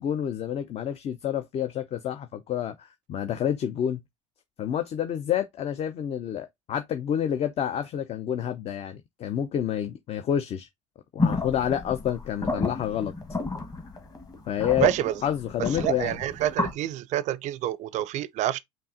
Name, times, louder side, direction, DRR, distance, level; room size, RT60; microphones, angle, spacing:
voice 1, 0.0-4.0 4.6-10.7 11.1-13.1 14.5-14.9 15.2-16.2, left 9 dB, 40° left, 0.5 m, -28 dB
sound 1, 11.2-16.7, left 3 dB, 20° left, 1.3 m, -31 dB
voice 2, 14.8-15.1 15.8-18.6, right 12 dB, 45° right, 0.4 m, -27 dB
5.3 x 2.5 x 2.6 m
hypercardioid pair, 70°, 17 cm